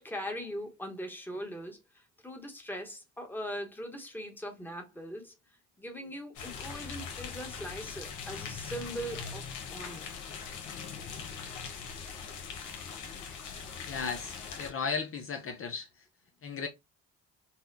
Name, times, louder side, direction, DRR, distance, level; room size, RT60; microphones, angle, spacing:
voice 1, 0.0-5.3 5.8-9.4 9.7-10.1 11.4-11.5, equal, 5° left, 1.0 m, -40 dB
sound 1, 6.4-14.7, left 6 dB, 90° left, 0.9 m, -41 dB
voice 2, 13.9-16.1 16.4-16.7, left 5 dB, 45° left, 0.6 m, -35 dB
4.1 x 2.1 x 2.5 m
cardioid pair, 90°, 30 cm